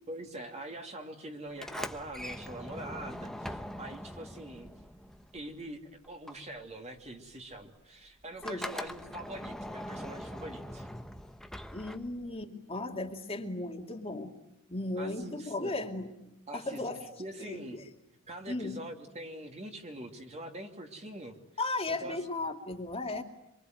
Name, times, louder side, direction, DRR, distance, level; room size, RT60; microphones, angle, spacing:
voice 1, 0.1-4.7 5.3-10.9 14.9-15.7 16.5-16.8 17.2-17.8 18.3-21.4 21.9-22.2, right 1 dB, 30° right, 3 dB, 2.8 m, -44 dB
Sliding door, 1.5-5.8 6.0-12.4, equal, ahead, 1.0 m, -42 dB
voice 2, 8.4-8.8 11.7-14.3 14.7-16.1 16.5-17.0 17.4-17.8 18.5-18.8 21.6-23.2, left 2 dB, 30° left, 2 dB, 2.5 m, -36 dB
26.5 x 23.5 x 9.5 m, 0.84 s
head